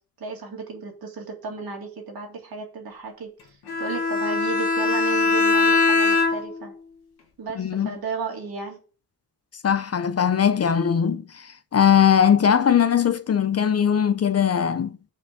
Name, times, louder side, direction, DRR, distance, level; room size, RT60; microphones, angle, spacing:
voice 1, 0.2-6.7 7.4-8.8, right 4 dB, 70° right, 2.4 m, -34 dB
Bowed string instrument, 3.7-6.7, left 3 dB, 85° left, 1.9 m, -21 dB
voice 2, 7.6-7.9 9.6-15.0, left 8 dB, 40° left, 0.5 m, -20 dB
6.0 x 4.3 x 6.5 m
wide cardioid pair, 115°, 38 cm